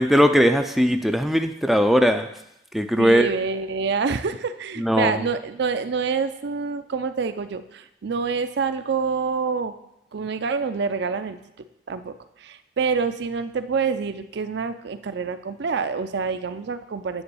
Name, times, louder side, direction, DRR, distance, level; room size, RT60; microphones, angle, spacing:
voice 1, 0.0-2.3 2.7-3.3 4.8-5.2, equal, ahead, 6 dB, 0.4 m, -19 dB
voice 2, 3.0-9.7 10.1-11.4 11.9-17.2, right 5 dB, 65° right, 10 dB, 0.5 m, -27 dB
9.5 x 3.9 x 6.9 m, 0.83 s
head